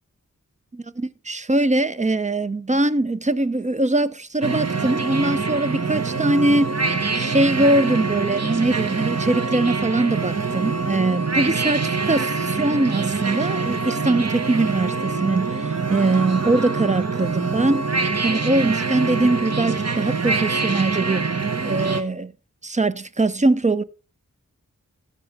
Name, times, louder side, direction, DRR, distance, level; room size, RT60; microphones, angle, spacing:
voice 1, 0.7-17.9 18.2-21.3 21.6-22.3 22.6-23.8, right 2 dB, 25° right, 0.4 m, -22 dB
sound 1, 4.4-22.0, right 4 dB, 50° right, 0.9 m, -25 dB
12.0 x 7.2 x 3.4 m
wide cardioid pair, 50°, 33 cm